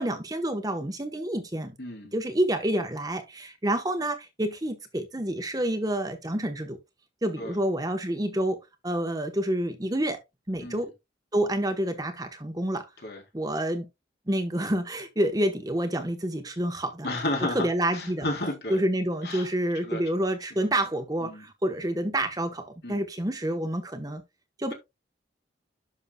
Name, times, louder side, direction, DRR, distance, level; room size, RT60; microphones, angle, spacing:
voice 1, 0.0-1.7 2.1-6.8 7.2-8.6 8.8-10.2 10.5-10.9 11.3-12.8 13.3-13.9 14.3-17.1 17.5-18.3 18.7-24.2 24.6-24.7, right 1 dB, 20° right, 1.1 m, -28 dB
voice 2, 1.8-2.1 7.4-7.6 10.6-10.8 13.0-13.2 17.0-17.7 17.9-18.8 19.2-19.5 19.8-20.0 21.2-21.8 22.8-23.0, left 1 dB, 60° left, 3.5 m, -32 dB
11.0 x 6.4 x 2.3 m
head